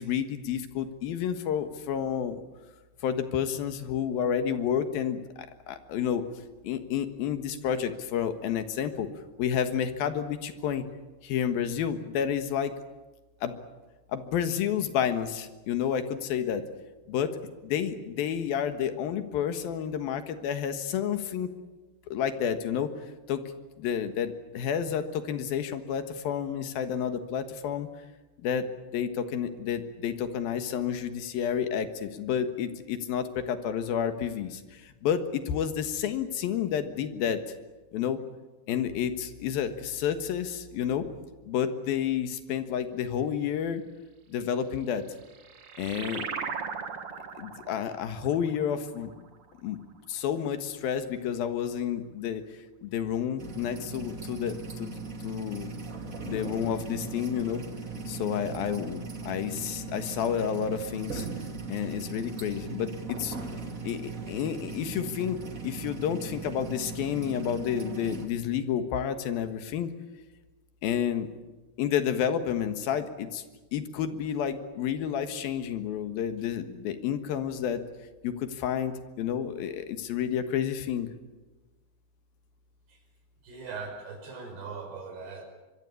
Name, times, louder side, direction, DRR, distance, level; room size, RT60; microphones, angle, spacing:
voice 1, 0.0-2.4 3.0-6.2 6.6-9.1 9.4-10.8 11.2-12.7 13.4-13.6 14.1-16.6 17.1-17.3 17.6-21.5 22.1-22.9 23.3-23.4 23.8-27.9 28.4-28.7 28.9-37.4 37.9-38.2 38.7-41.1 41.5-43.8 44.3-45.0 45.8-46.3 47.4-49.3 49.6-49.8 50.1-52.4 52.8-55.8 56.2-57.6 58.1-61.3 61.7-63.4 63.8-69.9 70.8-71.3 71.8-73.4 73.7-77.8 78.2-81.1, left 8 dB, 70° left, 9 dB, 3.1 m, -30 dB
sound 1, 44.9-50.0, right 6 dB, 45° right, 2.1 m, -39 dB
sound 2, 53.4-68.3, right 4 dB, 30° right, 1.8 m, -38 dB
voice 2, 83.4-85.5, right 4 dB, 70° right, 3 dB, 7.1 m, -40 dB
25.0 x 22.5 x 8.5 m, 1.2 s
omnidirectional pair, 4.8 m